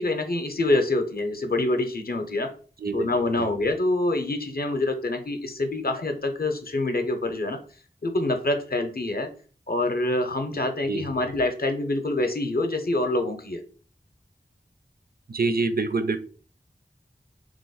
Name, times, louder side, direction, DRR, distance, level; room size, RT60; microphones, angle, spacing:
voice 1, 0.0-2.5 2.9-7.6 8.0-9.3 9.7-13.6, left 2 dB, 55° left, 6 dB, 0.6 m, -26 dB
voice 2, 15.3-16.2, right 3 dB, 55° right, 8 dB, 0.4 m, -25 dB
3.0 x 2.1 x 3.9 m, 0.40 s
wide cardioid pair, 45°, 18 cm